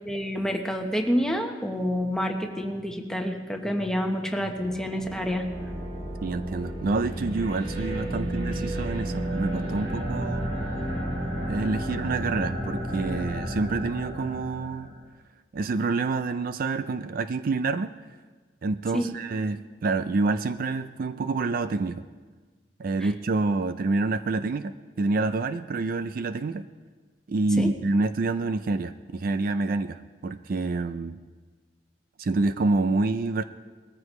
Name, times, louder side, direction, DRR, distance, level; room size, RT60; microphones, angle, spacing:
voice 1, 0.0-5.4 18.9-19.2 27.6-27.7, equal, 5° left, 3 dB, 1.1 m, -28 dB
sound 1, 4.5-15.0, equal, 85° right, 4.1 m, -32 dB
voice 2, 6.2-10.5 11.5-14.9 15.5-17.9 18.6-22.0 22.8-26.7 27.3-31.2 32.2-33.4, right 3 dB, 55° right, 12 dB, 0.4 m, -27 dB
20.5 x 14.0 x 3.2 m, 1.4 s
head